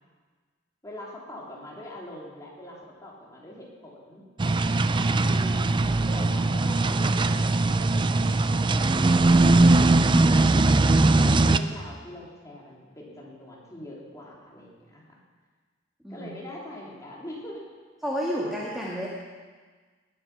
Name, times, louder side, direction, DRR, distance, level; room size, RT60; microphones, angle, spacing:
voice 1, 0.8-4.2 5.8-15.2 16.1-17.6, left 1 dB, 20° left, -4 dB, 3.3 m, -43 dB
sound 1, 4.4-11.6, right 2 dB, 25° right, 0.4 m, -20 dB
voice 2, 5.1-5.7 16.0-16.3 18.0-19.1, equal, ahead, -6 dB, 1.9 m, -31 dB
19.5 x 9.0 x 6.0 m, 1.5 s
head